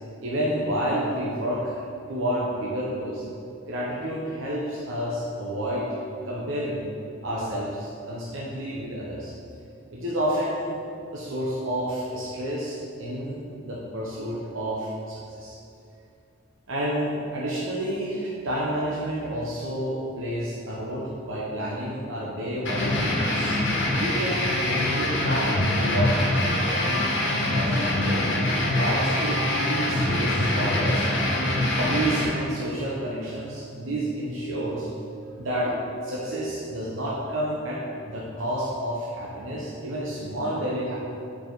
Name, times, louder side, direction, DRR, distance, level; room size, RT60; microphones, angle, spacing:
voice 1, 0.2-1.7 2.1-3.2 3.7-5.9 6.2-6.8 7.2-9.3 9.9-10.8 11.1-15.6 16.7-23.6 23.9-26.3 26.6-28.3 28.7-31.1 31.7-34.9 35.4-41.0, right 1 dB, 80° right, -5 dB, 0.9 m, -30 dB
sound 1, 22.6-32.2, left 1 dB, 65° left, 1.4 m, -24 dB
7.0 x 4.9 x 3.9 m, 2.6 s
head